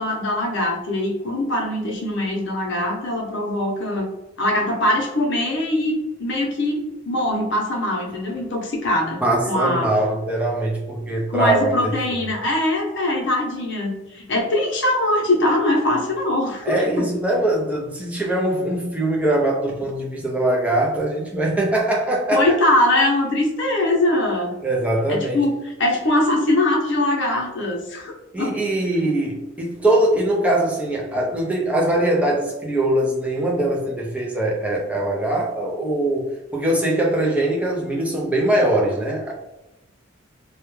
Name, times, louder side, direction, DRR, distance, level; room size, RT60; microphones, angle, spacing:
voice 1, 0.0-4.1 4.4-9.2 9.5-9.9 11.3-17.1 22.3-24.5 25.1-28.1 28.4-28.5, left 1 dB, 65° left, -1 dB, 0.7 m, -22 dB
voice 2, 9.2-12.2 16.6-22.6 24.6-25.4 28.3-39.3, right 1 dB, 5° right, -2 dB, 0.5 m, -22 dB
2.3 x 2.1 x 3.0 m, 0.94 s
head